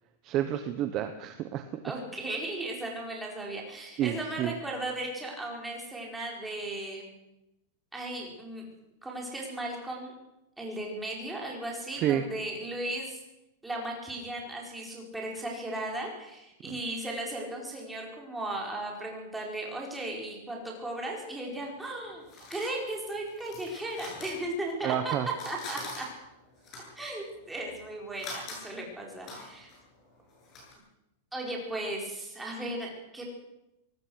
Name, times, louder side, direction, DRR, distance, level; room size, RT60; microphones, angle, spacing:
voice 1, 0.2-1.6 4.0-4.6 11.9-12.2 16.7-16.8 24.8-25.3, right 11 dB, 25° right, 8 dB, 1.1 m, -29 dB
voice 2, 1.8-7.1 7.9-8.6 9.0-10.1 10.6-13.2 13.6-22.2 22.5-26.1 27.0-29.7 31.3-33.2, right 1 dB, 5° right, -2 dB, 4.6 m, -36 dB
sound 1, 21.6-25.0 25.3-30.7, left 2 dB, 25° left, 7.9 m, -45 dB
23.5 x 19.0 x 6.4 m, 0.92 s
supercardioid pair, 180°, 0 cm